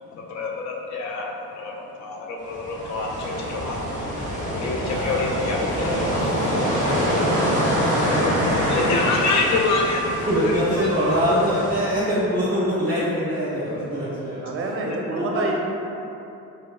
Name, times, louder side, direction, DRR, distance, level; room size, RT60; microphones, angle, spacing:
voice 1, 0.1-1.3 1.6-1.7 2.0-4.2 4.5-5.9 8.7-10.3 10.8-11.2, left 3 dB, 65° left, -1 dB, 0.5 m, -26 dB
sound 1, 2.4-11.8, equal, 25° left, 1.2 m, -25 dB
voice 2, 4.9-7.2 7.4-8.2 9.2-9.9 10.3-14.4 15.2-15.6, equal, 30° right, -10 dB, 1.1 m, -25 dB
voice 3, 14.4-15.6, right 2 dB, 45° right, 0 dB, 0.6 m, -27 dB
4.0 x 3.1 x 2.2 m, 2.8 s
cardioid pair, 90°, 30 cm